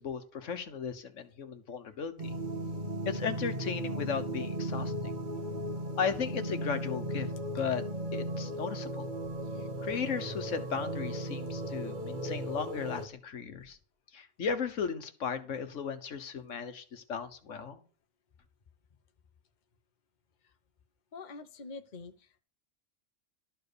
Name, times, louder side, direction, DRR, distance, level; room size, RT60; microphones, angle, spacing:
voice 1, 0.0-2.3 3.0-5.1 6.0-7.3 7.5-7.8 8.1-9.1 9.8-13.8 14.1-17.8, left 6 dB, 75° left, 9 dB, 1.4 m, -36 dB
sound 1, 2.2-13.1, right 1 dB, 40° right, 1.5 m, -36 dB
voice 2, 21.1-22.4, left 4 dB, 40° left, 7 dB, 1.0 m, -45 dB
12.5 x 4.6 x 6.7 m, 0.39 s
omnidirectional pair, 1.3 m